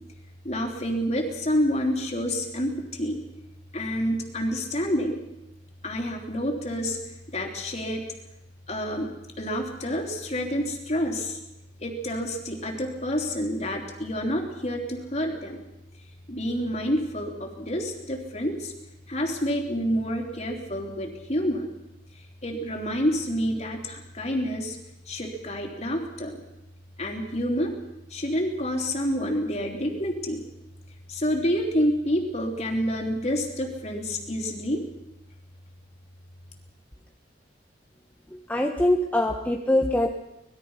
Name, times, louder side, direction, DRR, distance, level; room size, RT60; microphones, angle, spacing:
voice 1, 0.4-3.2 3.7-5.2 5.8-7.0 7.3-8.1 8.7-9.1 9.4-11.4 11.8-15.6 16.3-18.7 19.1-21.7 22.4-24.8 25.1-26.4 27.0-27.7 28.1-30.4 31.1-34.8, equal, 35° left, 3 dB, 3.5 m, -28 dB
voice 2, 38.5-40.1, left 1 dB, 10° left, 2 dB, 1.1 m, -23 dB
25.0 x 20.5 x 5.7 m, 0.90 s
head